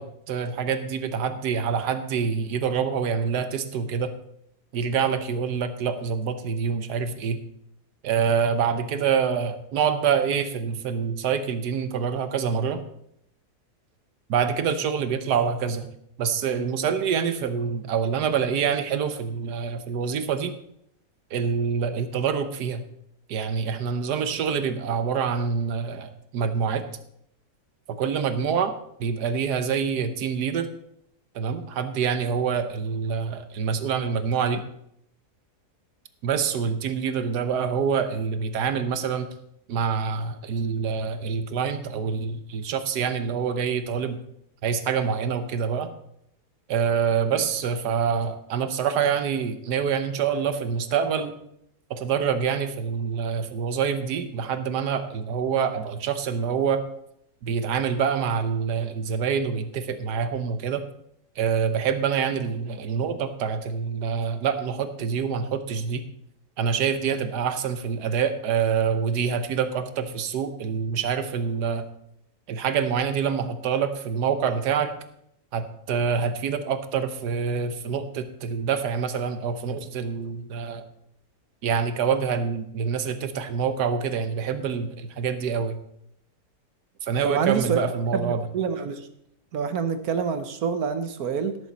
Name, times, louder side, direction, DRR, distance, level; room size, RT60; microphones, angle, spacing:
voice 1, 0.0-4.1 4.7-7.4 8.0-12.8 14.3-15.9 16.2-20.5 21.3-22.8 23.3-26.8 27.9-28.7 29.0-30.7 31.3-34.6 36.2-39.3 39.7-44.2 44.6-45.9 46.7-51.3 51.9-56.8 57.4-60.8 61.4-66.0 66.6-71.9 72.5-74.9 75.5-80.8 81.6-85.8 87.0-88.5, right 6 dB, 85° right, 10 dB, 1.5 m, -26 dB
voice 2, 87.2-87.8 88.1-89.1 89.5-91.6, right 6 dB, 70° right, 9 dB, 1.3 m, -26 dB
17.5 x 7.1 x 4.1 m, 0.74 s
omnidirectional pair, 1.7 m